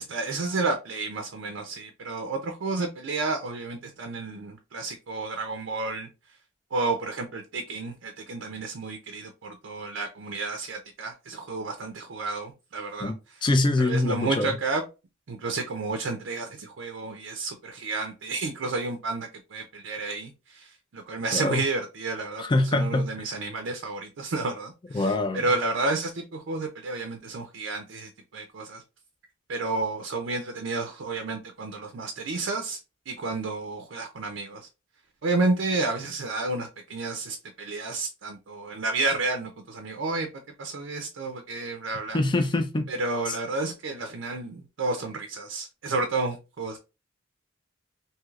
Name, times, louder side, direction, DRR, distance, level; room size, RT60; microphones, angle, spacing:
voice 1, 0.0-6.1 6.7-13.1 13.8-14.8 15.3-22.4 22.7-28.8 29.5-32.8 33.1-34.7 35.2-40.3 40.6-42.2 42.9-46.8, right 3 dB, 70° right, 0.5 m, -31 dB
voice 2, 13.4-14.6 21.3-21.6 22.4-23.3 24.9-25.4 42.1-42.8 43.3-43.4, left 2 dB, 25° left, 0.4 m, -24 dB
3.1 x 2.8 x 2.4 m
head